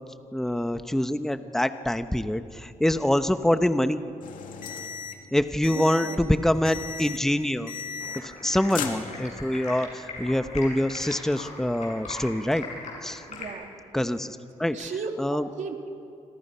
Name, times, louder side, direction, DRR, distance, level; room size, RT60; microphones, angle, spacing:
voice 1, 0.3-4.0 5.3-7.7 8.1-12.7 13.0-13.2 13.9-14.8 15.2-15.4, left 1 dB, 5° left, 10 dB, 0.9 m, -25 dB
sound 1, 4.2-5.3 5.6-6.3 6.6-7.3 7.7-8.4 8.7-9.6, left 7 dB, 90° left, 2.3 m, -36 dB
voice 2, 5.7-6.4 13.3-13.8 14.7-15.9, right 4 dB, 65° right, 4 dB, 2.6 m, -36 dB
Stream, 8.0-13.5, left 3 dB, 60° left, 7.2 m, -40 dB
28.0 x 26.0 x 5.6 m, 2.5 s
cardioid pair, 100°, 13 cm